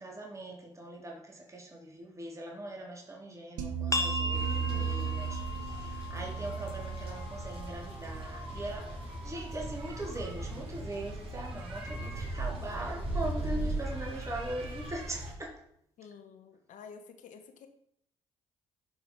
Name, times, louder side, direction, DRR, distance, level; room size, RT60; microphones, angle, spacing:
voice 1, 0.0-15.6, right 1 dB, 20° right, 3.2 m, -41 dB
sound 1, 3.6-8.8, right 8 dB, 70° right, 1.3 m, -36 dB
sound 2, 3.9-9.3, left 2 dB, 25° left, 1.3 m, -38 dB
voice 2, 4.2-5.1 16.0-17.7, left 6 dB, 65° left, 1.5 m, -50 dB
sound 3, 4.3-15.3, right 2 dB, 40° right, 4.7 m, -39 dB
11.5 x 5.2 x 5.2 m
hypercardioid pair, 55°, 14 cm